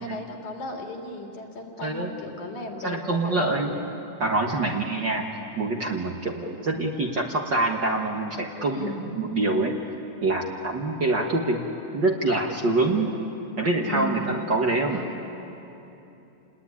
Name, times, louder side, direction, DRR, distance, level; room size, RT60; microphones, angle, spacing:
voice 1, 0.0-3.7 4.5-4.7 8.7-9.1 13.9-14.3 14.9-15.2, left 1 dB, 70° left, 1 dB, 4.0 m, -35 dB
voice 2, 2.8-3.7 4.2-5.3 5.6-9.8 10.2-11.6 11.9-13.1 13.6-15.0, right 2 dB, 45° right, 1 dB, 1.6 m, -25 dB
29.0 x 20.0 x 9.7 m, 2.9 s
omnidirectional pair, 3.5 m